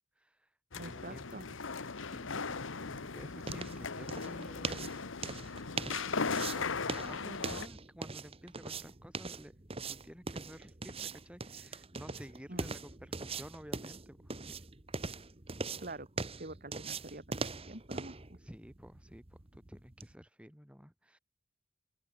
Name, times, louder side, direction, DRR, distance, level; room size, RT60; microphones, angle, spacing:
voice 1, 0.2-0.5 0.8-5.0 6.1-14.7 18.3-21.2, equal, 5° right, 4.9 m, -52 dB
sound 1, 0.7-7.7, left 4 dB, 70° left, 1.1 m, -38 dB
voice 2, 0.8-1.4 12.5-12.7 15.8-17.4 17.7-18.2, right 2 dB, 45° right, 3.0 m, -46 dB
sound 2, 2.3-20.1, right 4 dB, 30° right, 1.3 m, -42 dB
open air
head